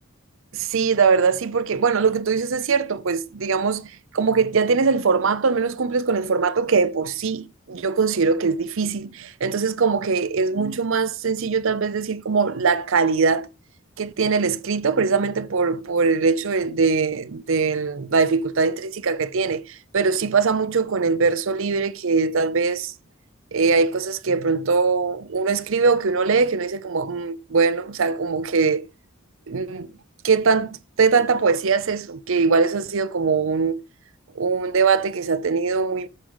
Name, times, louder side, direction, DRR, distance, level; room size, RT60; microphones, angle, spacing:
voice 1, 0.5-13.5 14.0-22.9 23.5-28.9 29.5-29.9 30.2-33.8 34.3-36.1, right 4 dB, 65° right, 0.7 m, -22 dB
8.2 x 5.0 x 5.6 m
head